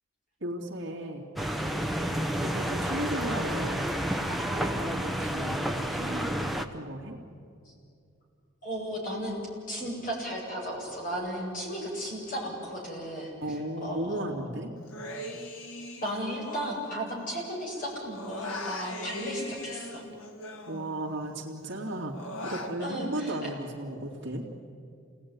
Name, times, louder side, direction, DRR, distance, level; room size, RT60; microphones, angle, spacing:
voice 1, 0.4-1.3 2.4-3.8 4.3-7.2 13.4-14.7 20.7-22.1 22.4-24.5, right 1 dB, 55° right, 0 dB, 2.7 m, -35 dB
sound 1, 1.4-6.7, equal, ahead, 0.9 m, -30 dB
voice 2, 8.6-9.3 9.7-14.5 16.0-20.0 22.8-23.4, equal, 40° left, -3 dB, 7.8 m, -35 dB
Human voice, 14.9-17.5 17.8-21.3 21.6-22.7, left 1 dB, 70° left, 2.2 m, -40 dB
28.0 x 19.0 x 9.7 m, 2.4 s
head